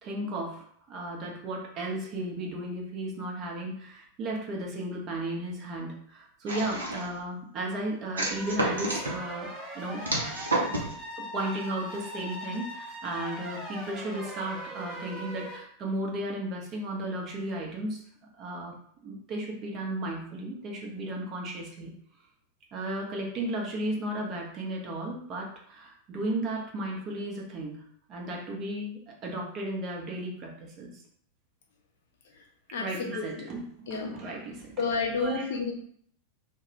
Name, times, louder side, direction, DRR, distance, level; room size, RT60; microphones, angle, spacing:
voice 1, 0.0-10.4 10.7-10.8 11.2-18.0 18.4-18.7 19.0-21.9 22.7-30.9 32.8-34.9 35.1-35.5, right 1 dB, 35° right, 0 dB, 0.7 m, -35 dB
sound 1, 6.5-7.2 8.2-9.1 10.0-10.9, right 2 dB, 75° right, 0.6 m, -30 dB
sound 2, 8.2-15.6, equal, 15° right, 1.0 m, -40 dB
voice 2, 33.1-33.5 33.9-34.1 34.8-35.7, left 4 dB, 55° left, 1 dB, 0.6 m, -30 dB
2.3 x 2.2 x 3.0 m, 0.62 s
figure-of-eight pair, 90°, 0 cm